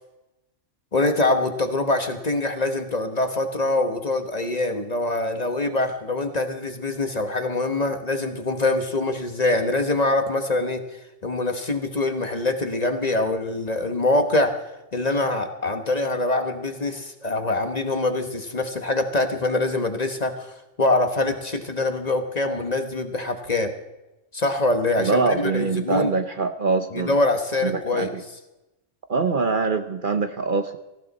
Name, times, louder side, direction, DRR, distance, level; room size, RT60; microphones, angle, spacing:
voice 1, 0.9-10.8 11.2-14.6 14.9-20.5 20.8-23.7 24.3-26.1 26.9-28.1, left 2 dB, 35° left, 7 dB, 1.2 m, -24 dB
voice 2, 25.0-27.2 27.6-28.2 29.1-30.8, right 4 dB, 50° right, 9 dB, 0.9 m, -24 dB
18.0 x 15.5 x 4.1 m, 0.99 s
omnidirectional pair, 1.3 m